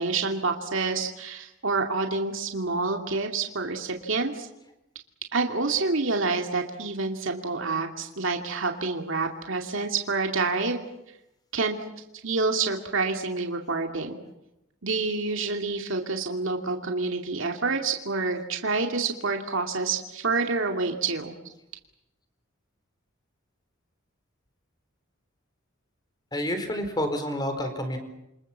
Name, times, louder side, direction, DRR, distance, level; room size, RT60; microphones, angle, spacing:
voice 1, 0.0-4.5 5.3-10.8 11.5-11.8 12.2-14.2 14.8-21.4, right 3 dB, 65° right, 3 dB, 2.5 m, -28 dB
voice 2, 26.3-28.0, equal, 20° left, 7 dB, 4.3 m, -29 dB
29.0 x 25.5 x 7.4 m, 0.89 s
head